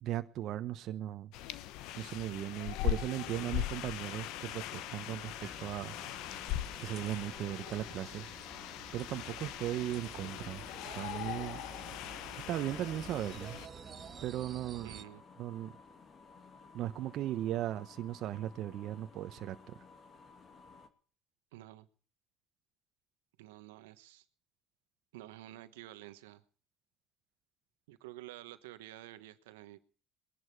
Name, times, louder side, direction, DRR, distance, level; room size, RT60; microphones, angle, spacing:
voice 1, 0.0-1.3 2.0-5.9 6.8-8.3 8.9-10.6 10.9-11.6 12.5-13.6 14.2-14.9 15.4-15.7 16.7-19.6, right 12 dB, 65° right, 9 dB, 1.1 m, -37 dB
sound 1, 1.3-13.7, left 13 dB, 75° left, 0.9 m, -40 dB
sound 2, 3.9-20.9, left 4 dB, 45° left, 2.5 m, -57 dB
sound 3, 5.3-15.0, right 7 dB, 45° right, 0.8 m, -52 dB
voice 2, 14.8-15.2 21.5-21.9 23.4-24.2 25.1-26.4 27.9-29.8, right 15 dB, 90° right, 11 dB, 1.2 m, -50 dB
21.5 x 11.0 x 4.7 m, 0.42 s
supercardioid pair, 80°, 0 cm